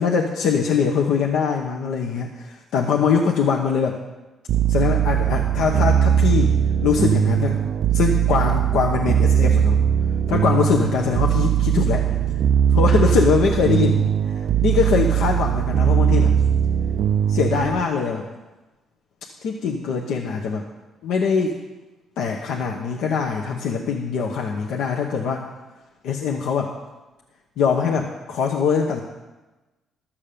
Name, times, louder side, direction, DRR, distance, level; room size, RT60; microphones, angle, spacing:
voice 1, 0.0-4.0 4.7-7.6 7.9-9.8 10.3-12.1 12.7-14.1 14.6-16.4 17.3-18.2 19.4-20.6 21.0-21.6 22.2-25.5 26.0-26.7 27.6-29.0, left 6 dB, 85° left, 1 dB, 1.0 m, -22 dB
sound 1, 4.5-17.8, right 9 dB, 70° right, 0.3 m, -20 dB
13.0 x 7.3 x 6.8 m, 1.1 s
cardioid pair, 90°, 0 cm